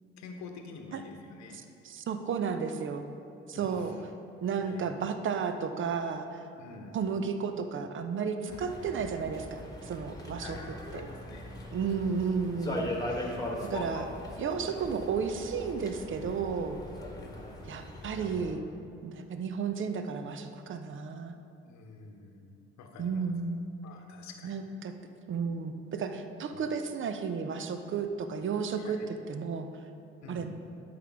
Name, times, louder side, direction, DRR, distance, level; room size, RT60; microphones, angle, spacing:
voice 1, 0.2-1.6 3.5-4.0 4.6-4.9 6.6-7.0 8.5-8.9 10.4-10.7 10.9-11.6 11.9-12.1 17.2-17.6 21.7-22.5 22.8-23.3 23.8-24.7 26.5-26.7 28.8-29.1 30.2-30.5, left 4 dB, 55° left, 3 dB, 1.0 m, -48 dB
voice 2, 1.5-3.1 3.5-3.9 4.4-6.4 6.9-10.6 10.9-11.0 11.7-14.1 14.4-16.8 17.7-18.6 19.0-21.3 23.0-23.6 24.4-24.9 25.3-29.7 30.3-30.5, right 6 dB, 40° right, 8 dB, 0.7 m, -33 dB
sound 1, 8.5-18.5, left 1 dB, 10° left, 1.4 m, -40 dB
12.0 x 5.2 x 3.5 m, 2.7 s
figure-of-eight pair, 45°, 33 cm